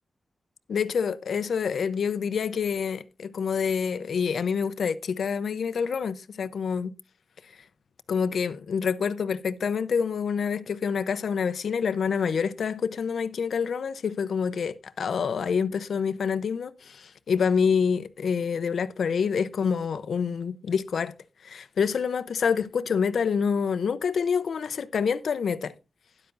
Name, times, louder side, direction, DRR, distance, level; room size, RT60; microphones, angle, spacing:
voice 1, 0.7-7.0 8.1-21.1 21.4-25.7, left 6 dB, 85° left, 0.6 m, -27 dB
12.5 x 10.5 x 2.5 m
wide cardioid pair, 105°, 0 cm